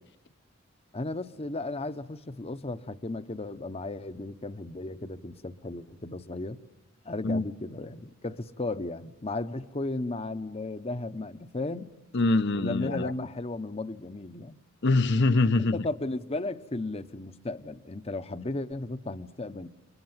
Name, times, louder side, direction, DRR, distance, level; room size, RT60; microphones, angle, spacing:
voice 1, 0.9-6.6 7.0-11.9 12.5-14.6 15.7-19.7, left 2 dB, 30° left, 0.9 m, -35 dB
voice 2, 12.1-13.1 14.8-15.8, left 2 dB, 60° left, 0.9 m, -24 dB
30.0 x 24.5 x 7.4 m
head